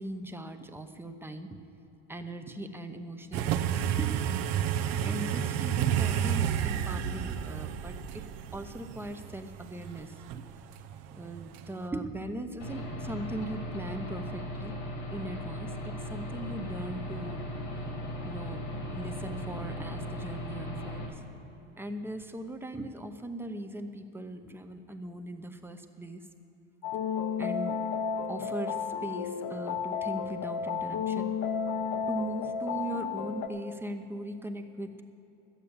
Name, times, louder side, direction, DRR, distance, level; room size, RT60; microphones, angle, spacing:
voice 1, 0.0-1.7 2.1-3.7 4.0-4.3 4.8-8.0 8.5-10.1 11.1-14.8 15.1-15.8 16.1-17.4 18.3-21.1 21.8-26.2 27.4-27.8 28.3-31.3 32.0-34.9, right 1 dB, 5° right, 6 dB, 0.8 m, -39 dB
sound 1, 3.3-11.9, right 9 dB, 55° right, 0.7 m, -31 dB
Aircraft / Engine, 12.6-21.1, equal, 80° left, 2.9 m, -37 dB
sound 2, 26.8-33.5, left 6 dB, 65° left, 1.1 m, -32 dB
12.5 x 8.8 x 7.2 m, 3.0 s
supercardioid pair, 105°, 31 cm